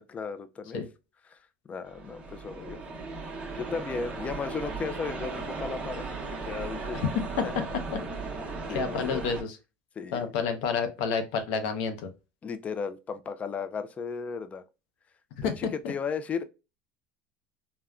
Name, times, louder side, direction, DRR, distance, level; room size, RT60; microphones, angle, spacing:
voice 1, 0.1-0.8 1.3-1.4 1.7-2.8 3.6-7.1 7.4-7.7 8.4-9.2 10.0-10.3 12.4-14.6 15.4-16.4, left 5 dB, 25° left, 0.3 m, -35 dB
sound 1, 1.8-9.4, right 3 dB, 20° right, 0.8 m, -37 dB
voice 2, 8.7-9.6 10.1-12.1 15.4-15.7, left 5 dB, 75° left, 0.6 m, -29 dB
3.5 x 2.1 x 2.2 m
supercardioid pair, 125°, 6 cm